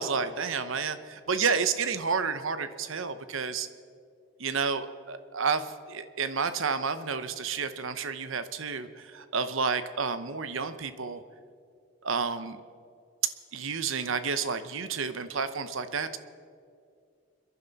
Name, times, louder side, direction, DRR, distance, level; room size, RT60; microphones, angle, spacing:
voice 1, 0.0-3.7 4.4-11.2 12.0-12.6 13.5-16.2, right 5 dB, 65° right, 11 dB, 0.8 m, -30 dB
26.5 x 11.0 x 4.1 m, 2.3 s
head